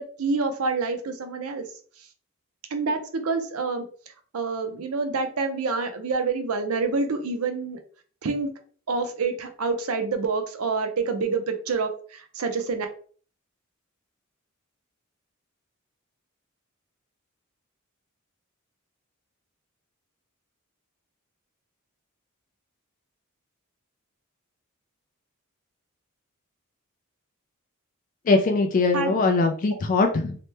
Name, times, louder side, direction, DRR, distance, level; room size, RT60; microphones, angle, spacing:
voice 1, 0.0-1.7 2.7-3.8 4.3-7.8 8.2-8.5 8.9-12.9 28.9-29.1, right 4 dB, 85° right, 7 dB, 0.6 m, -27 dB
voice 2, 28.3-30.4, left 3 dB, 40° left, 4 dB, 0.3 m, -21 dB
2.9 x 2.1 x 3.2 m, 0.43 s
head